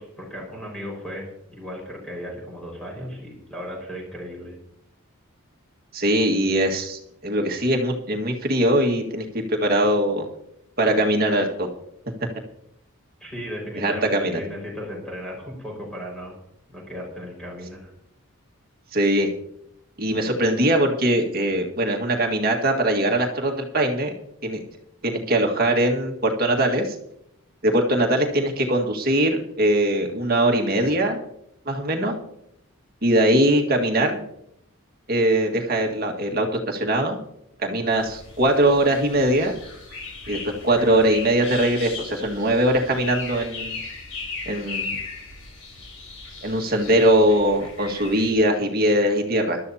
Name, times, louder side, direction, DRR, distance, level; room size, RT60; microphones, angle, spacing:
voice 1, 0.0-4.5 13.2-16.4 16.7-17.9, equal, 5° left, -2 dB, 5.1 m, -36 dB
voice 2, 5.9-10.3 10.8-11.7 13.8-14.4 18.9-19.3 20.0-24.1 24.4-24.6 25.0-27.0 27.6-31.2 31.7-32.2 33.0-34.2 35.1-37.2 37.6-39.5 40.3-43.8 44.5-45.0 46.4-49.6, right 1 dB, 40° right, 2 dB, 1.8 m, -21 dB
sound 1, 37.9-48.3, left 4 dB, 80° left, 4.2 m, -37 dB
21.0 x 12.5 x 2.8 m, 0.78 s
head